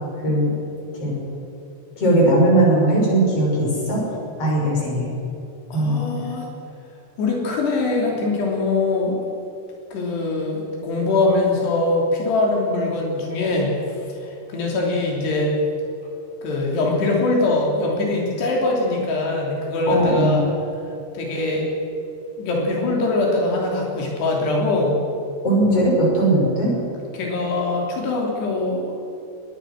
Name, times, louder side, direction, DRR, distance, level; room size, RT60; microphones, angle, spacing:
voice 1, 2.0-4.0 4.4-5.1 5.7-6.0 19.9-20.4 25.4-26.7, right 1 dB, 35° left, -3 dB, 7.3 m, -18 dB
voice 2, 5.7-6.5 7.2-9.2 9.9-15.5 16.4-20.4 21.1-21.6 22.4-25.0 27.1-29.0, left 2 dB, 85° left, -2 dB, 5.3 m, -22 dB
23.0 x 21.0 x 6.4 m, 2.7 s
omnidirectional pair, 4.7 m